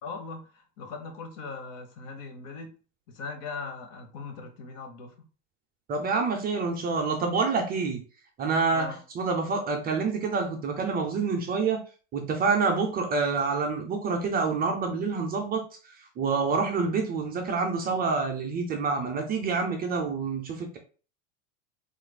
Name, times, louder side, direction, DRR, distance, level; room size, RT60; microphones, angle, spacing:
voice 1, 0.0-2.7 3.1-5.1 8.7-9.0, left 4 dB, 45° left, 5 dB, 0.9 m, -39 dB
voice 2, 5.9-8.0 8.4-8.9 9.2-11.8 12.1-15.6 16.2-20.8, right 4 dB, 25° right, 3 dB, 0.5 m, -27 dB
4.4 x 2.5 x 2.2 m, 0.37 s
supercardioid pair, 120°, 37 cm